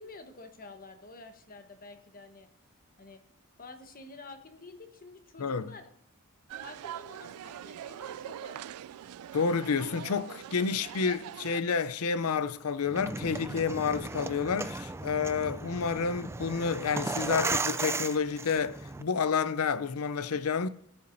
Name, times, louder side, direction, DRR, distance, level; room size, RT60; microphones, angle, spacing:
voice 1, 0.0-2.5 3.0-3.2 3.6-5.9 6.5-8.6, left 3 dB, 40° left, 1.2 m, -49 dB
voice 2, 5.4-5.7 9.3-20.7, left 5 dB, 75° left, 0.6 m, -29 dB
sound 1, 6.5-11.6, right 10 dB, 90° right, 0.3 m, -43 dB
sound 2, 12.9-19.0, right 3 dB, 10° right, 0.3 m, -35 dB
16.0 x 8.5 x 2.7 m
head